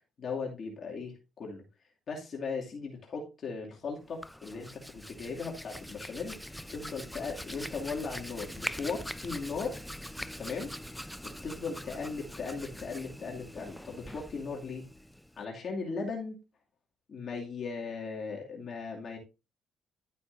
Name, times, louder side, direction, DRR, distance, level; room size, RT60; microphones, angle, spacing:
voice 1, 0.2-1.6 2.1-9.8 10.4-11.0 11.4-14.8 15.4-16.4 17.1-19.2, left 4 dB, 50° left, -1 dB, 2.5 m, -38 dB
Hands, 4.0-15.4, equal, 5° left, 0.6 m, -43 dB
11.5 x 8.3 x 2.7 m, 0.28 s
cardioid pair, 90°, 0 cm